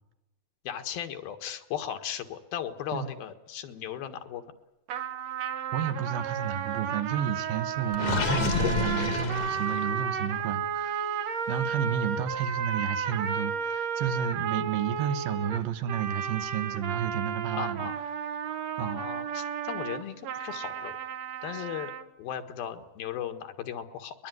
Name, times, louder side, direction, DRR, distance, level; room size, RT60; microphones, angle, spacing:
voice 1, 0.6-4.4 17.5-17.9 18.8-21.0 21.4-21.9 22.2-24.3, left 9 dB, 75° left, 8 dB, 3.4 m, -37 dB
sound 1, 4.9-22.1, right 7 dB, 55° right, 2.1 m, -33 dB
voice 2, 5.7-17.9 18.8-19.0, right 8 dB, 75° right, 10 dB, 3.0 m, -31 dB
Gurgling, 7.9-10.1, left 6 dB, 55° left, 2.0 m, -30 dB
22.0 x 21.5 x 9.4 m, 0.94 s
omnidirectional pair, 4.3 m